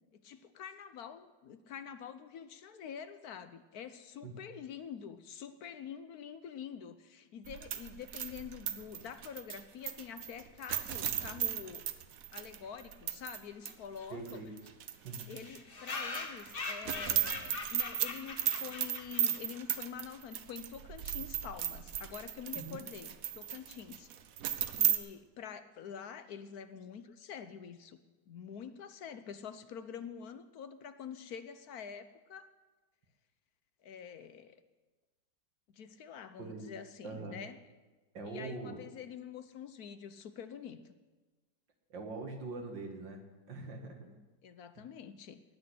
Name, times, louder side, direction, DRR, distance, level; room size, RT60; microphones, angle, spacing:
voice 1, 0.1-11.8 12.3-14.4 15.3-24.1 24.7-32.5 33.8-34.6 35.7-37.6 38.2-40.9 43.9-45.4, left 7 dB, 65° left, 11 dB, 1.2 m, -46 dB
sound 1, 7.5-13.4 13.7-13.8 14.3-15.6 15.9-25.0, right 9 dB, 55° right, 1.1 m, -35 dB
sound 2, 13.7-13.8 14.0-14.1 14.3-14.4 14.6-14.7 15.4-19.6, left 3 dB, 35° left, 1.3 m, -42 dB
voice 2, 14.1-14.5 15.0-15.3 22.6-22.8 36.4-36.7 37.0-37.4 38.1-38.9 41.9-44.1 44.8-44.9, right 3 dB, 90° right, 3 dB, 2.7 m, -43 dB
19.0 x 6.4 x 10.0 m, 1.2 s
omnidirectional pair, 1.9 m